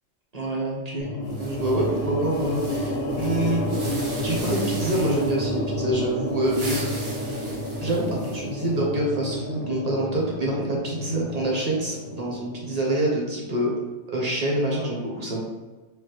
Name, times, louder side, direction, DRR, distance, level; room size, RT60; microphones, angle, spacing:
voice 1, 0.3-3.6 4.2-7.5 7.8-13.7 14.1-15.4, right 1 dB, 40° right, -3 dB, 0.7 m, -26 dB
sound 1, 1.0-13.3, equal, 70° left, 0.9 m, -30 dB
sound 2, 1.3-5.5 6.3-8.6, right 2 dB, 85° right, 1.3 m, -40 dB
3.3 x 2.6 x 2.9 m, 1.2 s
omnidirectional pair, 1.3 m